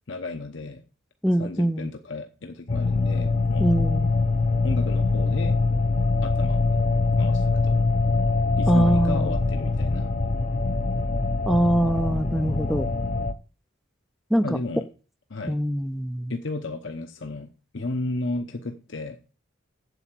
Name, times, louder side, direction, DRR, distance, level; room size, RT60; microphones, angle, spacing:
voice 1, 0.1-0.8 1.4-3.7 4.6-5.5 6.2-7.8 8.6-10.1 14.4-14.9 15.3-15.6 16.3-17.5 17.7-19.2, left 2 dB, 65° left, 5 dB, 0.9 m, -33 dB
voice 2, 1.2-1.9 3.6-4.1 8.7-9.3 11.5-12.9 14.3-14.4 15.5-16.3, right 1 dB, ahead, 10 dB, 0.4 m, -23 dB
sound 1, 2.7-13.3, left 3 dB, 40° left, 0.6 m, -23 dB
8.2 x 7.9 x 7.4 m, 0.37 s
head